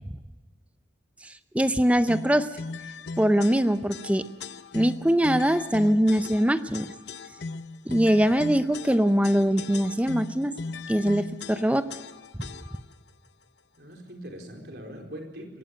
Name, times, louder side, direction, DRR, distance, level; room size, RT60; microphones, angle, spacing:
voice 1, 1.5-2.5 3.2-4.3 4.7-6.9 7.9-10.5 10.9-11.9, equal, 5° right, 11 dB, 0.6 m, -22 dB
sound 1, 2.1-12.9, left 4 dB, 70° left, 0.8 m, -38 dB
voice 2, 13.8-15.6, equal, 60° right, 2 dB, 4.4 m, -42 dB
22.5 x 18.0 x 6.5 m, 1.2 s
head